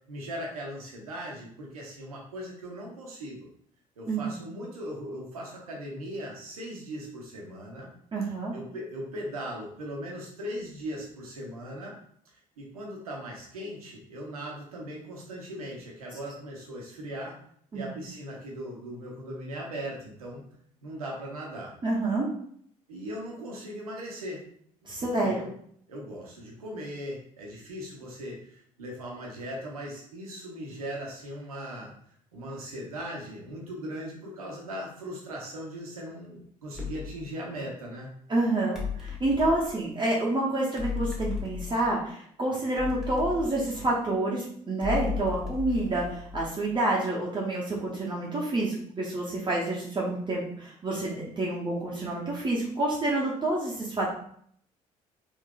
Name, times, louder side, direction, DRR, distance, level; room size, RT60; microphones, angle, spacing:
voice 1, 0.1-3.5 4.0-7.9 8.5-12.0 12.6-17.3 17.7-20.4 20.8-21.7 22.9-24.4 25.0-25.5 25.9-31.9 32.3-38.1, equal, 85° right, -2 dB, 0.7 m, -39 dB
voice 2, 8.1-8.5 17.7-18.0 21.8-22.3 24.9-25.4 38.3-54.1, right 2 dB, 25° right, -4 dB, 0.7 m, -28 dB
sound 1, 36.7-37.2 38.7-39.7 40.8-42.0 42.8-44.1 44.8-46.7, left 6 dB, ahead, 1.2 m, -35 dB
3.7 x 2.5 x 2.3 m, 0.64 s
figure-of-eight pair, 50°, 18 cm